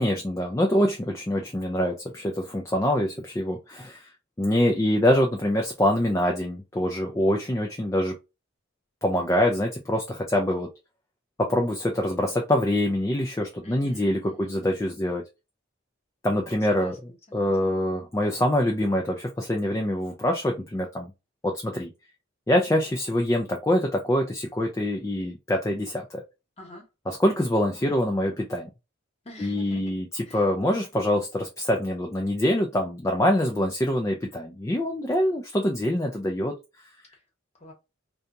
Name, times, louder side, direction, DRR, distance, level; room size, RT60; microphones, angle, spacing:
voice 1, 0.0-4.1 4.4-8.2 9.0-10.7 11.4-15.2 16.2-16.9 17.3-21.1 21.4-21.9 22.5-26.2 27.1-28.7 29.4-36.5, left 1 dB, 15° left, 0.4 m, -25 dB
voice 2, 13.6-14.7 16.7-17.7 26.6-26.9 29.2-29.9 30.3-30.5 37.5-37.7, left 1 dB, 30° left, 1.1 m, -46 dB
2.8 x 2.2 x 2.5 m
head